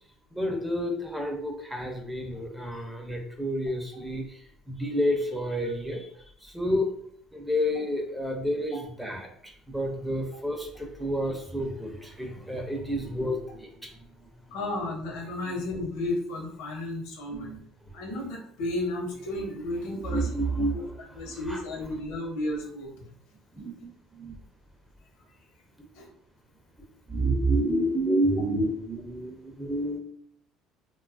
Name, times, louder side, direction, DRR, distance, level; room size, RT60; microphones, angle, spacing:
voice 1, 0.3-6.9 7.3-13.9 14.2-14.3 17.3-17.6 20.0-20.8 21.3-21.6 23.5-24.4 27.1-30.0, equal, 5° right, 2 dB, 0.4 m, -30 dB
voice 2, 14.5-17.5 17.9-20.3 20.7-20.8 21.1-22.9 25.9-26.1, left 1 dB, 85° left, 0 dB, 0.8 m, -33 dB
2.6 x 2.2 x 2.5 m, 0.66 s
cardioid pair, 130°, 0 cm